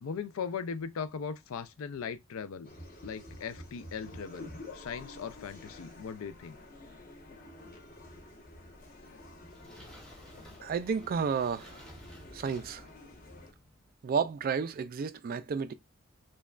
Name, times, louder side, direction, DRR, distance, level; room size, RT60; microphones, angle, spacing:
voice 1, 0.0-2.7 3.0-6.6, left 6 dB, 70° left, 0.4 m, -39 dB
sound 1, 2.6-13.5, left 2 dB, 40° left, 0.9 m, -49 dB
sound 2, 9.0-13.9, equal, 5° left, 0.8 m, -55 dB
voice 2, 10.6-11.8 12.3-12.8 14.0-15.7, right 6 dB, 40° right, 0.3 m, -31 dB
5.0 x 2.2 x 2.4 m
head